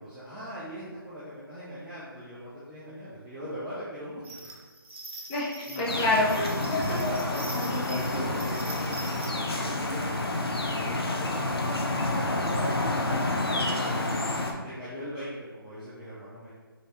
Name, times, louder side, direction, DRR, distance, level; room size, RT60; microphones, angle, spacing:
voice 1, 0.0-4.6 5.1-5.3 5.7-5.9 6.5-14.2 14.6-16.5, equal, 5° right, -13 dB, 0.4 m, -40 dB
sound 1, 4.2-9.3, right 2 dB, 85° right, 0.8 m, -43 dB
voice 2, 5.3-7.0 7.5-8.0, left 2 dB, 20° left, -6 dB, 0.9 m, -28 dB
sound 2, 5.9-14.5, left 2 dB, 85° left, 0.7 m, -29 dB
5.2 x 2.7 x 3.2 m, 1.4 s
figure-of-eight pair, 155°, 12 cm